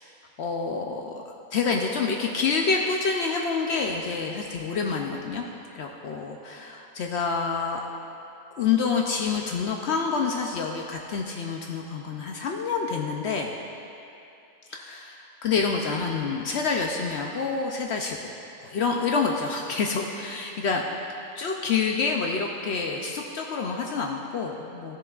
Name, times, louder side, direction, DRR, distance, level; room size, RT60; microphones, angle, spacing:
voice 1, 0.4-1.2 1.5-5.4 5.7-7.9 8.6-13.5 14.7-18.2 18.6-20.8 21.4-25.0, left 5 dB, 70° left, 1 dB, 0.6 m, -27 dB
13.0 x 7.0 x 2.3 m, 2.7 s
omnidirectional pair, 1.6 m